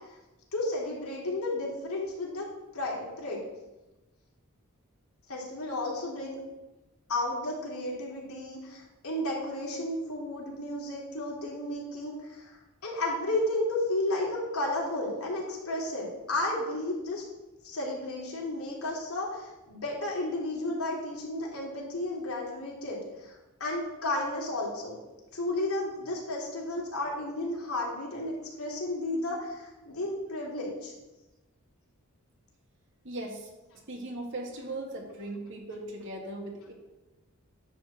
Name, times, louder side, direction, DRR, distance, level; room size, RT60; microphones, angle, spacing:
voice 1, 0.5-2.5 2.7-3.4 5.3-6.4 7.1-17.2 17.6-25.0 25.3-30.9, left 1 dB, 75° left, -3 dB, 3.1 m, -33 dB
voice 2, 33.0-33.5 33.9-36.7, right 2 dB, 55° right, 2 dB, 1.9 m, -38 dB
10.5 x 4.3 x 7.5 m, 1.1 s
head